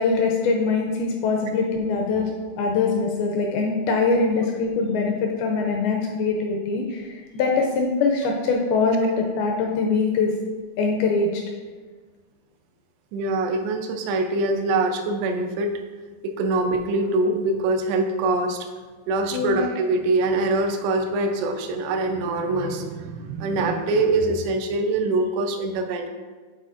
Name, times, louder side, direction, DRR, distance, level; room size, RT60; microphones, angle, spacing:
voice 1, 0.0-2.3 2.6-10.3 10.8-11.4 19.3-19.6, left 4 dB, 85° left, 1 dB, 2.2 m, -23 dB
voice 2, 13.1-15.8 16.2-18.7 19.1-26.1, right 2 dB, 85° right, 4 dB, 2.7 m, -24 dB
9.8 x 4.2 x 2.5 m, 1.4 s
omnidirectional pair, 4.8 m